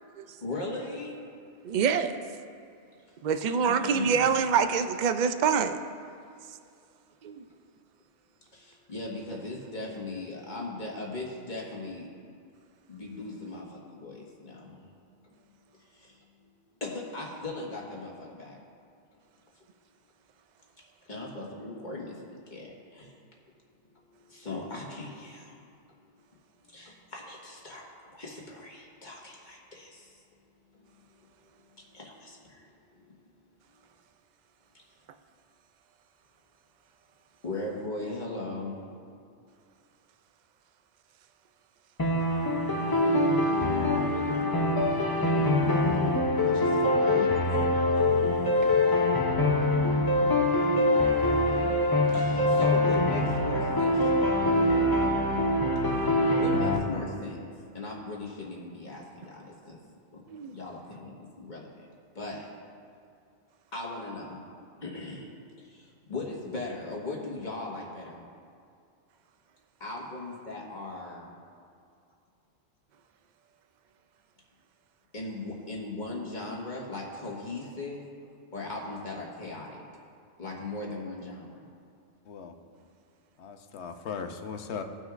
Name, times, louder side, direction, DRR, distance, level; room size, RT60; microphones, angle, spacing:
voice 1, 0.4-1.2 3.6-4.4 8.5-12.4 12.9-14.8 15.9-16.5 16.8-18.6 21.0-23.2 23.9-25.6 26.7-27.9 28.1-30.2 30.7-30.9 31.6-33.1 37.4-38.8 46.5-47.3 48.1-48.3 52.1-54.5 55.9-56.0 56.4-57.4 57.7-59.8 60.1-60.2 60.5-61.7 62.1-62.5 63.7-64.4 64.8-65.3 65.6-68.3 69.8-71.4 75.1-78.0 78.5-79.8 80.4-81.7, left 2 dB, 40° left, -3 dB, 1.6 m, -39 dB
voice 2, 1.6-2.2 3.2-5.8 7.2-7.4 48.6-48.7 60.3-60.5, right 6 dB, 60° right, 9 dB, 0.5 m, -25 dB
sound 1, 42.0-56.8, left 1 dB, 25° left, 0.6 m, -24 dB
voice 3, 83.4-84.8, left 6 dB, 70° left, 7 dB, 0.9 m, -38 dB
18.0 x 6.2 x 2.5 m, 2.4 s
omnidirectional pair, 1.2 m